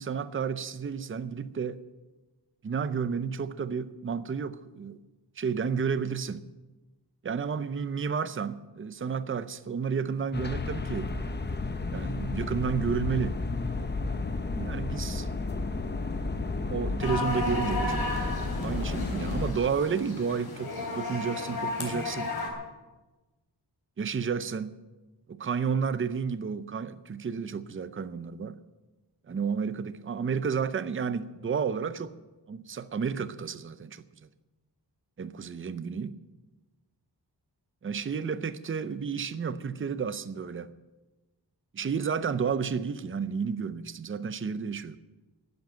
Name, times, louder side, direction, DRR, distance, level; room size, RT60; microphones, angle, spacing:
voice 1, 0.0-1.8 2.6-5.0 5.4-6.4 7.2-11.1 11.9-13.4 14.6-15.3 16.6-18.1 18.6-22.3 24.0-24.8 25.3-28.6 29.3-32.1 32.5-34.0 35.2-36.2 37.8-40.7 41.7-45.0, right 6 dB, 30° right, 14 dB, 0.5 m, -31 dB
sound 1, 10.3-19.5, left 3 dB, 25° left, 0.8 m, -32 dB
sound 2, 17.0-22.5, left 2 dB, 60° left, 3.5 m, -34 dB
12.0 x 10.5 x 9.0 m, 1.2 s
wide cardioid pair, 180°, 42 cm